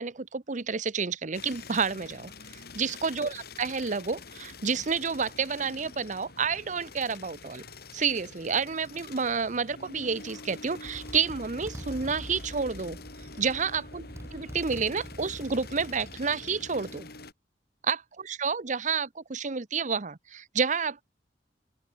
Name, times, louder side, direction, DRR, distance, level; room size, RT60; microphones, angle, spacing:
voice 1, 0.0-7.6 7.9-13.0 13.4-14.1 14.3-17.1 17.8-21.0, right 5 dB, 45° right, 0.9 m, -30 dB
sound 1, 1.3-17.3, left 3 dB, 60° left, 6.4 m, -46 dB
Motorcycle, 10.3-10.4 10.8-17.0, equal, 15° right, 4.0 m, -45 dB
open air
head